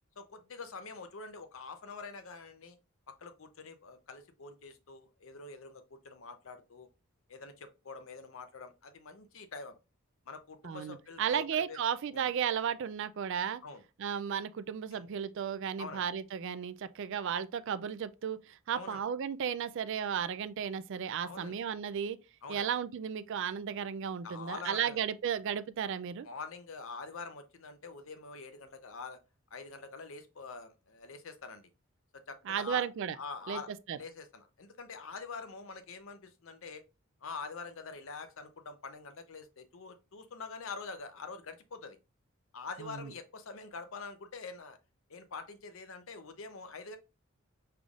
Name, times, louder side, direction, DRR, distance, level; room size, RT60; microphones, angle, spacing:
voice 1, 0.2-2.8 3.2-6.9 7.3-9.7 10.3-11.8 12.1-12.3 13.6-13.8 14.9-15.0 15.8-16.0 18.7-19.0 21.2-21.6 22.4-22.7 24.2-25.0 26.2-29.2 29.5-31.7 32.1-32.9 33.2-33.7 34.0-36.8 37.2-42.0 42.5-44.8 45.1-47.0, left 4 dB, 65° left, 0.7 m, -45 dB
voice 2, 10.6-13.6 14.0-22.2 22.5-26.3 32.5-33.2 33.5-33.6 33.9-34.0 42.8-43.1, right 8 dB, 60° right, 0.3 m, -34 dB
5.3 x 3.4 x 2.4 m
head